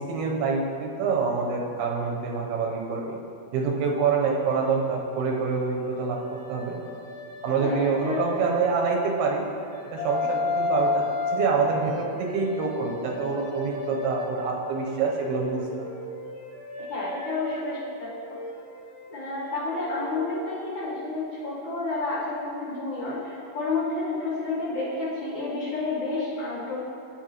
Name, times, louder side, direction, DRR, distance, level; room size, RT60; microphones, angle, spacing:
voice 1, 0.0-3.2 3.5-6.8 7.4-9.5 9.9-11.0 11.3-15.9, right 5 dB, 85° right, -1 dB, 2.8 m, -26 dB
sound 1, 5.6-9.1 9.6-14.8 15.2-20.8, left 3 dB, 85° left, 2.6 m, -34 dB
voice 2, 7.6-8.2 16.9-18.1 19.1-26.8, left 3 dB, 60° left, -8 dB, 2.2 m, -30 dB
8.8 x 8.0 x 3.0 m, 2.4 s
omnidirectional pair, 4.5 m